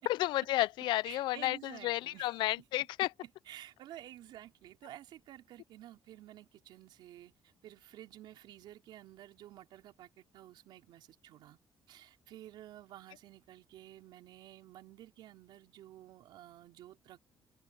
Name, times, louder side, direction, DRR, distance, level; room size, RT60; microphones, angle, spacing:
voice 1, 0.1-1.6 1.8-3.1, left 16 dB, 90° left, 0.5 m, -31 dB
voice 2, 1.0-2.7 3.0-11.6 11.9-17.2, right 13 dB, 75° right, 4.4 m, -52 dB
open air
cardioid pair, 140°, 8 cm